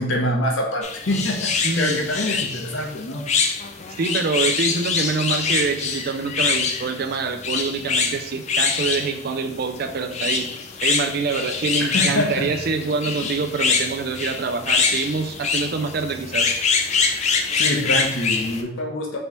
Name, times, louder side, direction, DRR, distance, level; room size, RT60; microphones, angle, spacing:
voice 1, 0.0-3.2 11.8-12.5 17.6-19.2, left 1 dB, 60° left, 0 dB, 0.9 m, -25 dB
sound 1, 0.8-18.6, left 5 dB, 30° left, 0.3 m, -24 dB
voice 2, 1.6-2.1 4.0-10.5 10.8-16.5, right 4 dB, 45° right, 7 dB, 0.4 m, -25 dB
4.3 x 3.3 x 3.0 m, 0.73 s
head